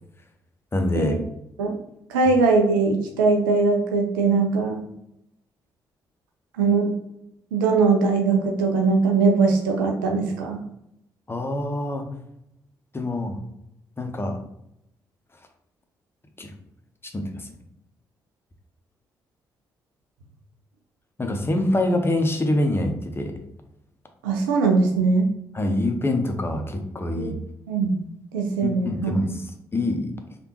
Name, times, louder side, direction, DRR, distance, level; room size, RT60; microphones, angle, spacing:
voice 1, 0.7-1.2 11.3-12.0 12.9-13.4 14.0-14.4 16.4-16.5 17.1-17.5 21.2-23.3 25.5-27.3 28.6-29.3 29.7-30.1, left 1 dB, 20° left, 4 dB, 0.7 m, -25 dB
voice 2, 2.1-4.8 6.6-7.0 7.5-10.6 24.2-25.3 27.2-27.4 27.7-28.0 28.3-29.3, right 4 dB, 80° right, 2 dB, 0.5 m, -21 dB
3.3 x 2.4 x 3.0 m, 0.81 s
figure-of-eight pair, 40°, 11 cm